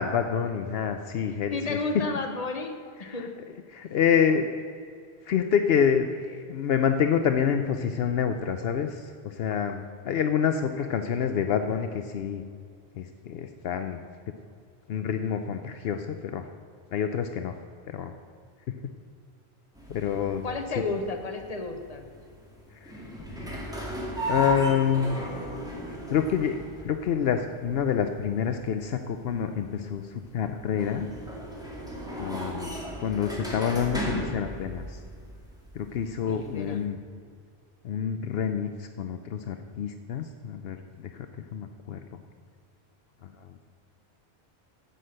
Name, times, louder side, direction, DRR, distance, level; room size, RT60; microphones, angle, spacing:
voice 1, 0.0-1.8 3.0-3.3 3.7-4.5 5.2-12.4 13.0-14.0 14.9-16.4 16.9-17.5 17.9-18.1 18.7-18.8 19.9-20.4 22.8-22.9 24.3-25.3 26.1-26.6 26.8-31.1 32.2-32.7 33.0-35.0 35.7-37.0 37.8-42.0 43.4-43.5, left 7 dB, 75° left, 7 dB, 0.8 m, -27 dB
voice 2, 1.5-3.4 20.4-22.1 36.2-36.8, left 3 dB, 40° left, 4 dB, 1.1 m, -32 dB
sound 1, 19.7-36.8, equal, 5° right, 2.0 m, -36 dB
9.9 x 8.0 x 6.4 m, 2.2 s
omnidirectional pair, 1.1 m